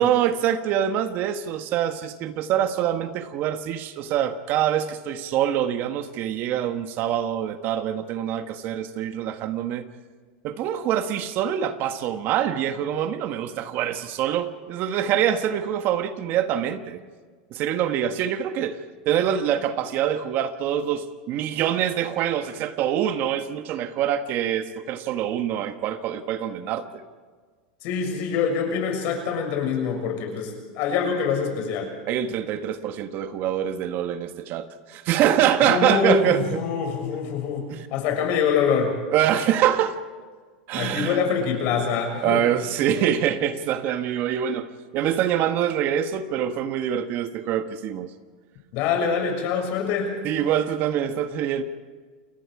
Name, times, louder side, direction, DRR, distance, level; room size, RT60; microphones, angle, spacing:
voice 1, 0.0-9.9 10.4-17.0 17.5-18.8 19.0-26.8 32.1-36.4 37.7-37.9 39.1-40.0 40.7-41.2 42.2-44.7 44.9-48.1 50.2-51.6, right 10 dB, 50° right, 9 dB, 1.4 m, -25 dB
voice 2, 27.8-31.9 35.6-37.7 37.9-38.9 40.7-42.4 48.7-50.1, left 6 dB, 55° left, 3 dB, 6.7 m, -25 dB
29.0 x 21.0 x 4.9 m, 1.5 s
supercardioid pair, 115°, 5 cm